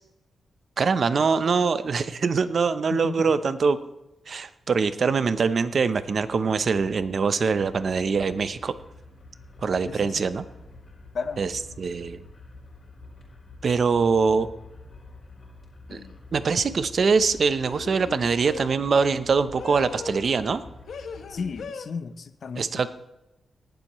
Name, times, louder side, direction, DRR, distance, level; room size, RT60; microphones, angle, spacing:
voice 1, 0.8-3.8 4.3-8.7 9.6-10.4 11.4-11.5 11.8-12.2 13.6-14.5 15.9-16.0 16.3-20.6 22.6-22.9, right 5 dB, 50° right, 12 dB, 0.7 m, -23 dB
voice 2, 2.9-3.3 9.8-10.3 11.1-11.4 21.3-22.9, left 5 dB, 55° left, 11 dB, 0.7 m, -34 dB
sound 1, 8.1-21.6, left 2 dB, 35° left, 4.3 m, -47 dB
sound 2, 15.9-16.2 17.6-18.8 19.5-20.6 20.9-21.9, left 5 dB, 85° left, 1.0 m, -39 dB
18.5 x 12.0 x 3.1 m, 0.94 s
wide cardioid pair, 145°, 0 cm